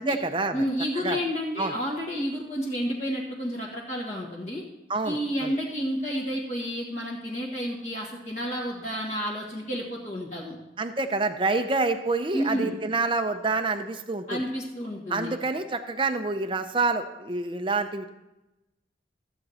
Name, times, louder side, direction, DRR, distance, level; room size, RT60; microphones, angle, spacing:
voice 1, 0.0-0.6 1.0-1.2 1.6-1.7 4.9-5.5 10.8-14.4 15.1-18.1, right 3 dB, 25° right, 7 dB, 0.6 m, -27 dB
voice 2, 0.5-4.6 5.0-10.6 12.3-12.8 14.3-15.3, equal, 40° left, -4 dB, 1.7 m, -30 dB
14.0 x 7.9 x 4.3 m, 0.98 s
head